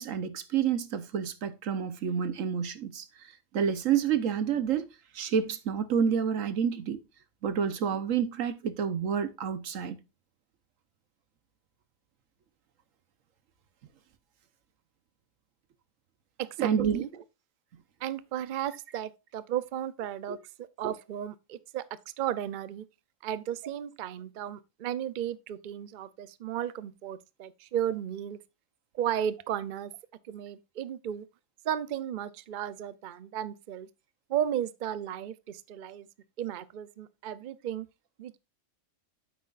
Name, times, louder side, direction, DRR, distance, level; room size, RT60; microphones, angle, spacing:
voice 1, 0.0-3.0 3.5-4.8 5.1-7.0 7.4-10.0 16.6-17.0 20.3-20.4, right 7 dB, 85° right, 1.3 m, -29 dB
voice 2, 16.4-17.1 18.0-21.8 22.2-22.8 23.2-28.4 28.9-29.9 30.2-31.3 31.6-33.9 34.3-36.1 36.4-37.9 38.2-38.4, right 10 dB, 55° right, 0.6 m, -34 dB
9.4 x 7.8 x 2.4 m
omnidirectional pair, 1.3 m